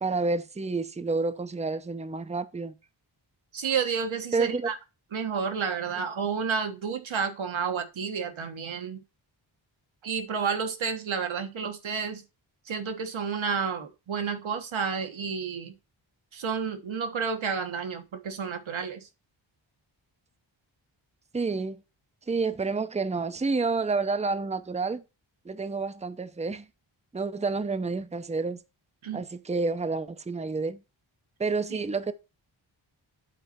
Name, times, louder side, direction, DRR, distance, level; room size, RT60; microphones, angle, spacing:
voice 1, 0.0-2.7 4.3-4.7 21.3-21.8 22.3-25.0 25.4-26.7 27.1-28.6 29.1-30.8 31.4-32.1, right 4 dB, 15° right, 0.6 m, -29 dB
voice 2, 3.5-4.8 5.1-9.0 10.0-12.2 12.7-15.7 16.3-19.1 29.0-29.2 31.7-31.8, right 6 dB, 75° right, 1.4 m, -31 dB
9.1 x 4.2 x 4.3 m
wide cardioid pair, 75°, 47 cm